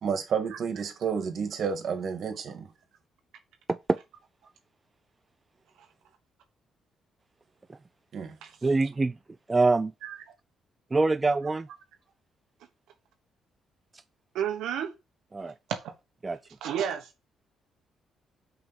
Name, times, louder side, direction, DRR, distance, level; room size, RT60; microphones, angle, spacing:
voice 1, 0.0-2.7 8.1-8.3, right 6 dB, 60° right, 2.0 m, -30 dB
voice 2, 8.6-9.1 9.5-9.9 10.9-11.7 15.3-15.5 16.2-16.4, right 3 dB, 25° right, 0.4 m, -24 dB
voice 3, 14.3-14.9 15.4-15.8 16.6-17.1, right 9 dB, 85° right, 1.2 m, -31 dB
5.5 x 5.4 x 5.3 m
cardioid pair, 90°, 0 cm